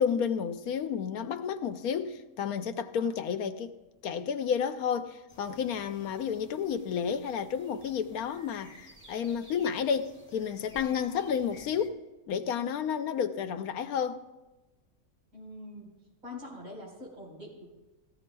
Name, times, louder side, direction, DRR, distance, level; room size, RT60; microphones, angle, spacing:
voice 1, 0.0-3.7 4.0-12.0 12.3-14.2, left 7 dB, 80° left, 1.1 m, -31 dB
sound 1, 5.3-11.9, left 1 dB, 5° left, 2.2 m, -55 dB
voice 2, 15.3-15.9 16.2-17.6, left 1 dB, 75° right, 4.9 m, -44 dB
18.5 x 15.0 x 2.3 m
omnidirectional pair, 1.6 m